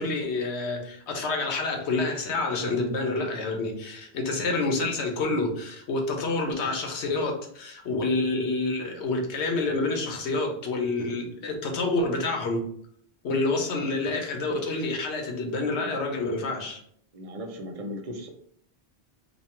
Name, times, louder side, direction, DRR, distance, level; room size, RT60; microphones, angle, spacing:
voice 1, 0.0-12.6 13.2-16.8, left 3 dB, 85° left, 2 dB, 1.0 m, -28 dB
voice 2, 17.1-18.3, equal, 40° right, 3 dB, 0.6 m, -37 dB
3.1 x 2.3 x 4.3 m, 0.64 s
omnidirectional pair, 1.1 m